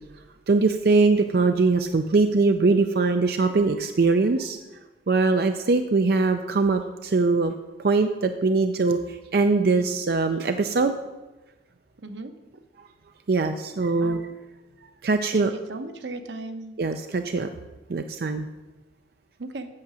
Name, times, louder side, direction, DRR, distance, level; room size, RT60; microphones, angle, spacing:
voice 1, 0.5-4.6 5.1-7.5 7.8-10.9 13.3-14.2 15.0-15.5 16.8-17.5 17.9-18.5, right 3 dB, 55° right, 7 dB, 0.4 m, -22 dB
voice 2, 12.0-12.3 14.0-14.2 15.3-16.7 19.4-19.7, right 2 dB, 85° right, 8 dB, 0.9 m, -36 dB
8.6 x 6.6 x 6.1 m, 1.1 s
head